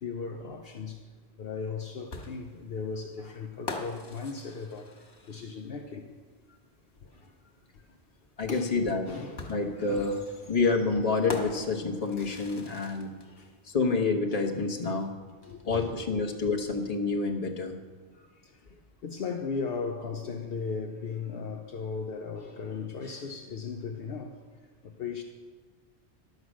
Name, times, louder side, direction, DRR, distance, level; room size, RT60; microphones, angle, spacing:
voice 1, 0.0-1.0 1.4-6.1 7.0-7.3 8.4-8.8 9.0-9.4 9.7-10.5 12.2-12.3 13.2-13.5 14.7-14.8 15.4-15.9 18.2-18.6 19.0-24.4 24.8-25.2, left 5 dB, 65° left, 3 dB, 0.9 m, -37 dB
sound 1, 2.1-5.8 7.2-7.3 9.4-13.3, left 3 dB, 90° left, 1.7 m, -42 dB
voice 2, 8.4-9.1 9.5-10.2 10.5-13.1 13.7-15.1 15.6-17.8, left 4 dB, 35° left, 1 dB, 1.2 m, -28 dB
11.5 x 7.9 x 6.3 m, 1.4 s
omnidirectional pair, 1.1 m